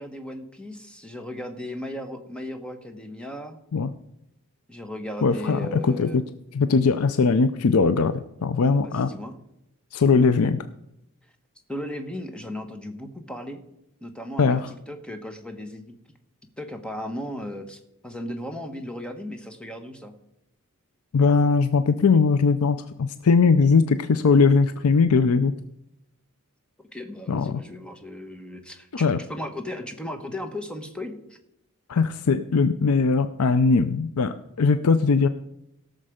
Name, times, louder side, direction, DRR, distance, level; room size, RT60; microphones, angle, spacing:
voice 1, 0.0-3.6 4.7-6.2 8.8-9.4 11.7-13.6 14.0-15.9 16.6-20.2 26.8-31.4, left 1 dB, 5° left, 6 dB, 1.2 m, -36 dB
voice 2, 5.2-6.2 6.6-9.1 9.9-10.6 14.4-14.7 21.1-25.5 27.3-27.6 28.9-29.2 31.9-35.3, left 4 dB, 75° left, 12 dB, 0.5 m, -20 dB
17.0 x 6.6 x 5.0 m, 0.81 s
head